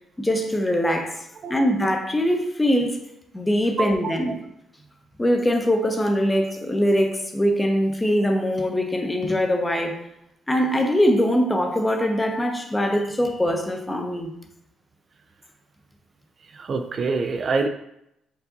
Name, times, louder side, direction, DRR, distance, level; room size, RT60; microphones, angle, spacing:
voice 1, 0.2-1.2 1.5-3.0 3.3-4.4 5.2-10.0 10.5-14.3, equal, 15° left, 4 dB, 0.7 m, -22 dB
voice 2, 3.8-4.4 16.5-17.7, right 4 dB, 45° right, 6 dB, 0.3 m, -26 dB
4.6 x 2.5 x 3.8 m, 0.79 s
cardioid pair, 90°, 0 cm